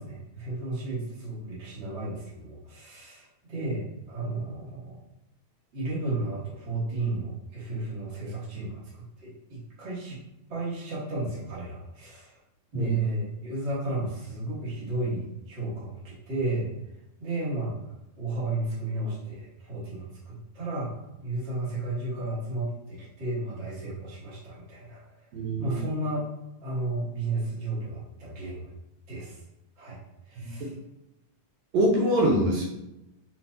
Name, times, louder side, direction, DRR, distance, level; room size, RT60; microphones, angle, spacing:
voice 1, 0.0-5.0 5.7-10.2 10.5-12.4 12.7-16.7 17.2-17.7 18.2-20.9 21.2-25.0 25.6-26.3 26.6-28.7 29.1-29.4 29.8-30.0 30.3-30.7, right 2 dB, 45° right, -7 dB, 0.8 m, -33 dB
voice 2, 25.3-25.8 30.4-30.5 31.7-32.6, right 1 dB, 75° right, -1 dB, 1.8 m, -24 dB
4.3 x 4.1 x 2.6 m, 0.91 s
omnidirectional pair, 3.5 m